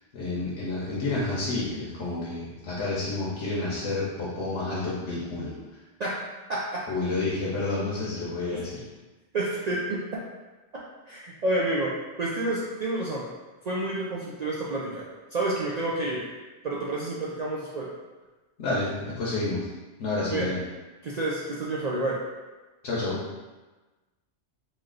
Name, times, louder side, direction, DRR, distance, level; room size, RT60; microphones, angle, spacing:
voice 1, 0.1-5.5 6.9-8.8 18.6-19.7 20.0-20.6 22.8-23.2, left 2 dB, 80° left, -6 dB, 1.1 m, -29 dB
voice 2, 6.5-6.8 9.3-10.2 11.1-11.9 12.2-13.3 13.6-15.1 15.3-16.2 16.6-17.9 20.3-20.5 21.0-22.2, right 2 dB, 60° right, -5 dB, 0.4 m, -29 dB
3.1 x 2.7 x 3.8 m, 1.2 s
omnidirectional pair, 1.2 m